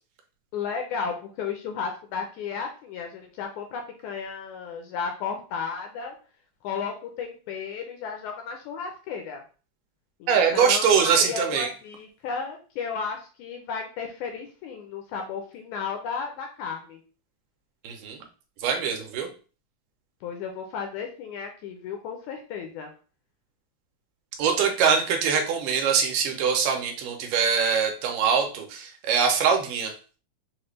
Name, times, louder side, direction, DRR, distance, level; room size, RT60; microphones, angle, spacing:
voice 1, 0.5-6.2 6.6-9.4 10.2-17.0 20.2-22.9, left 6 dB, 80° left, 3 dB, 1.8 m, -34 dB
voice 2, 10.3-11.7 17.8-18.2 18.6-19.3 24.4-29.9, right 6 dB, 85° right, 3 dB, 2.3 m, -23 dB
5.9 x 2.4 x 3.1 m, 0.37 s
omnidirectional pair, 3.8 m